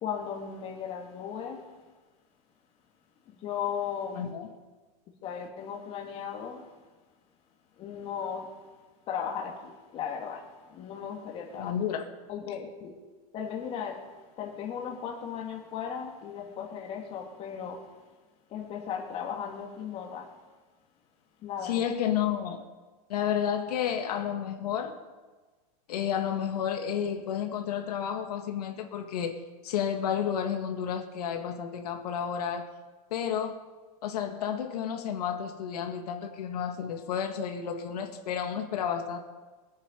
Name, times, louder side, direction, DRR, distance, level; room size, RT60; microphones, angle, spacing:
voice 1, 0.0-1.7 3.3-4.3 5.2-6.7 7.8-8.6 9.1-11.7 12.3-12.9 13.3-17.9 18.5-20.4 21.4-21.9, left 7 dB, 30° left, 2.3 m, -36 dB
voice 2, 4.2-4.5 11.6-12.1 21.6-22.6 23.1-25.0 25.9-32.8 33.1-33.6 34.0-39.2, left 8 dB, 85° left, 1.8 m, -31 dB
21.5 x 9.1 x 5.4 m
supercardioid pair, 155°, 20 cm